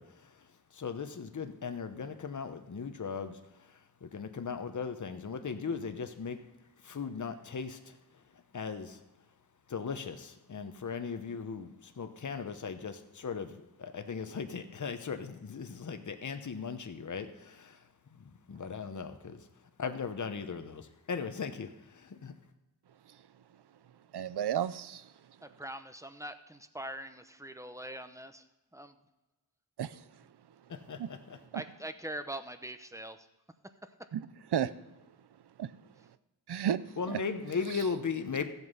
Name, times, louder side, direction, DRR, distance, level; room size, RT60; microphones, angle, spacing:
voice 1, 0.0-6.4 6.8-8.0 8.3-9.0 9.7-17.8 18.2-19.5 19.8-22.3 30.7-31.4 37.0-38.4, left 5 dB, 50° left, 8 dB, 1.0 m, -38 dB
voice 2, 24.1-25.1 29.8-30.0 31.0-31.1 34.1-34.2 34.5-34.7 35.6-35.7 36.5-36.8 37.1-37.2, right 9 dB, 80° right, 15 dB, 0.6 m, -32 dB
voice 3, 25.4-28.4 28.7-29.0 31.5-33.3, right 1 dB, 10° right, 9 dB, 0.8 m, -43 dB
14.0 x 8.1 x 5.6 m, 1.0 s
wide cardioid pair, 80°, 39 cm